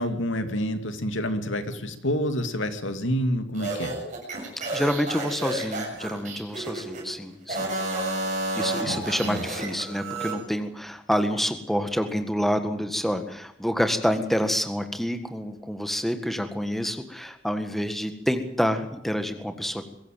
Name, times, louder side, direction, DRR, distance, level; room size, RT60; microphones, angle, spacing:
voice 1, 0.0-3.9 8.8-9.4, equal, 80° left, 8 dB, 2.6 m, -28 dB
sound 1, 3.5-7.0 7.4-10.4, right 2 dB, 40° right, 7.1 m, -31 dB
voice 2, 4.7-7.7 8.6-19.8, equal, ahead, 7 dB, 1.7 m, -28 dB
23.0 x 15.5 x 9.2 m, 0.76 s
head